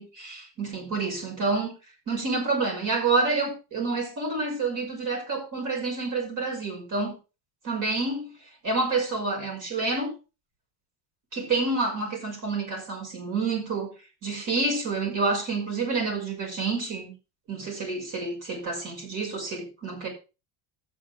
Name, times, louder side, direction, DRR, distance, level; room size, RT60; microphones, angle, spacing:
voice 1, 0.0-1.7 2.1-7.1 7.6-8.3 8.6-10.1 11.3-13.9 14.2-17.1 17.5-20.1, right 3 dB, 35° right, 5.7 m, -28 dB
13.5 x 8.7 x 3.5 m
cardioid pair, 170°, 50 cm